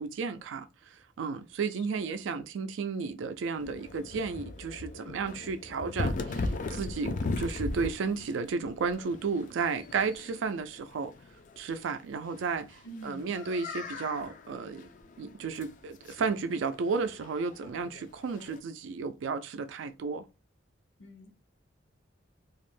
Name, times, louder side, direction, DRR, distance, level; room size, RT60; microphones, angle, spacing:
voice 1, 0.0-11.1 11.6-14.9 15.2-20.2, right 5 dB, 90° right, 0.4 m, -33 dB
sound 1, 3.6-18.6, left 3 dB, 45° left, 0.3 m, -39 dB
voice 2, 12.8-13.4 21.0-21.3, right 1 dB, 75° left, 0.6 m, -45 dB
2.4 x 2.1 x 3.1 m
head